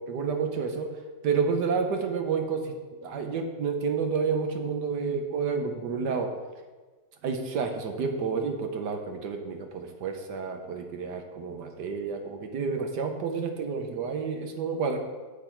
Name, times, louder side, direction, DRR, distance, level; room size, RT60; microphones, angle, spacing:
voice 1, 0.1-0.9 1.2-2.8 3.0-6.3 7.2-15.0, right 5 dB, 75° right, 5 dB, 1.5 m, -30 dB
8.7 x 7.4 x 4.5 m, 1.4 s
omnidirectional pair, 1.9 m